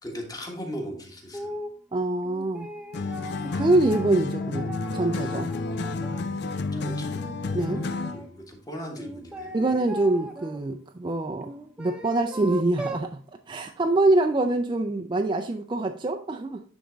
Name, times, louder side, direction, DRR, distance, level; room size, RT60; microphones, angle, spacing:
voice 1, 0.0-1.5 6.8-7.2 7.7-9.5, equal, 20° left, 1 dB, 1.5 m, -38 dB
sound 1, 1.3-1.8 2.2-6.3 6.7-8.3 9.0-10.6 11.4-13.1, right 1 dB, 5° right, 0.8 m, -39 dB
voice 2, 1.9-2.7 3.5-5.5 7.5-7.8 9.5-11.5 11.8-13.2 13.5-16.6, right 2 dB, 25° right, 4 dB, 0.4 m, -25 dB
sound 2, 2.9-8.3, left 3 dB, 55° left, 0.5 m, -30 dB
10.0 x 3.5 x 3.8 m, 0.43 s
head